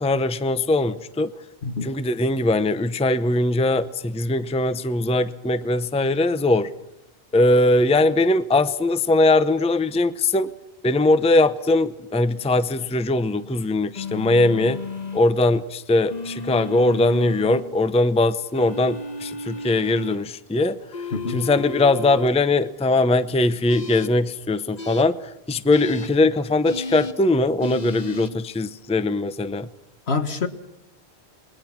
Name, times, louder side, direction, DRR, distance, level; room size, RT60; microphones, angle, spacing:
voice 1, 0.0-1.3 1.8-6.7 7.3-10.5 10.8-14.8 15.1-20.8 21.3-25.2 25.5-29.7, left 2 dB, 5° left, 13 dB, 0.6 m, -20 dB
sound 1, 13.9-15.2 16.1-17.6 18.5-20.2 20.9-22.3 23.7-24.1 24.8-25.0 25.7-26.1 26.6-27.1 27.6-28.3, left 3 dB, 40° left, 1.3 m, -33 dB
voice 2, 21.1-21.4 30.1-30.5, left 4 dB, 75° left, 8 dB, 1.8 m, -26 dB
27.5 x 21.0 x 6.0 m, 0.86 s
omnidirectional pair, 1.1 m